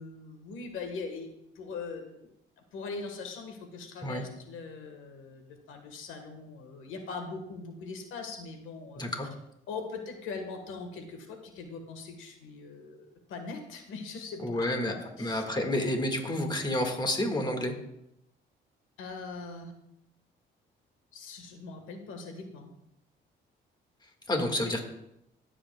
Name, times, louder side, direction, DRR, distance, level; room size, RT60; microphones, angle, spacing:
voice 1, 0.0-2.3 2.7-9.0 9.7-15.4 19.0-19.7 21.1-22.7 24.6-24.8, left 4 dB, 90° left, 5 dB, 1.3 m, -41 dB
voice 2, 9.0-9.3 14.4-14.9 15.2-17.7 24.3-24.8, left 1 dB, 20° left, 4 dB, 1.6 m, -29 dB
14.5 x 7.7 x 2.2 m, 0.81 s
cardioid pair, 90°, 20 cm